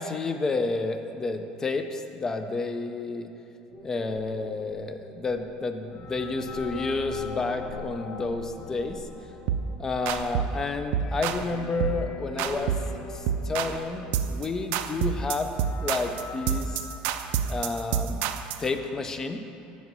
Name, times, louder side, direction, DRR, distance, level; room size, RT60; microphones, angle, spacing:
voice 1, 0.0-3.3 3.8-9.1 9.8-12.7 13.1-15.5 15.8-16.8 17.5-18.3 18.6-19.4, left 3 dB, 15° left, 7 dB, 0.4 m, -30 dB
sound 1, 3.7-17.3, left 3 dB, 75° left, 1.0 m, -42 dB
sound 2, 9.5-9.7 10.1-10.6 10.9-11.5 11.8-12.0 12.4-12.9 13.3-13.8 14.1-14.5 14.7-18.7, right 8 dB, 65° right, 0.3 m, -28 dB
7.5 x 4.1 x 5.9 m, 2.8 s
cardioid pair, 155°, 3 cm